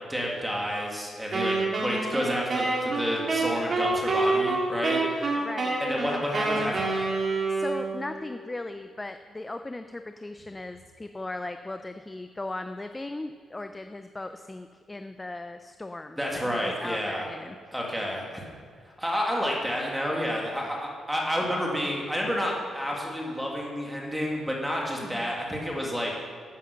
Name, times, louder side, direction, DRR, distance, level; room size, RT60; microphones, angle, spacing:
voice 1, 0.1-5.3 5.8-7.1 16.2-17.3 17.7-18.4 19.0-26.2, equal, 5° right, -2 dB, 2.0 m, -30 dB
Wind instrument woodwind instrument, 1.3-8.2, right 3 dB, 35° right, 2.1 m, -27 dB
voice 2, 5.4-5.9 7.3-17.7 25.0-25.3, left 2 dB, 15° left, 8 dB, 0.4 m, -38 dB
11.0 x 9.0 x 6.7 m, 2.1 s
cardioid pair, 160°, 0 cm